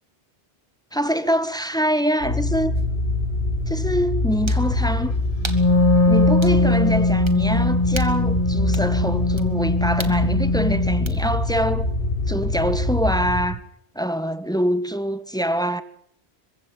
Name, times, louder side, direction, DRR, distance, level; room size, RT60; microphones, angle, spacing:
voice 1, 0.9-2.7 3.7-5.1 6.1-11.9 12.3-13.6 13.9-15.8, equal, 5° left, 1.3 m, -24 dB
sound 1, 2.2-13.5, left 2 dB, 70° left, 4.9 m, -24 dB
sound 2, 2.8-2.9 4.4-4.7 5.4-5.7 6.4-6.6 7.3-7.4 7.9-8.2 8.7-8.9 9.4-9.5 10.0-10.2 11.1-11.2, right 1 dB, 25° right, 2.3 m, -35 dB
Wind instrument woodwind instrument, 5.4-11.1, left 2 dB, 35° left, 1.4 m, -20 dB
23.5 x 16.0 x 8.9 m
omnidirectional pair, 1.1 m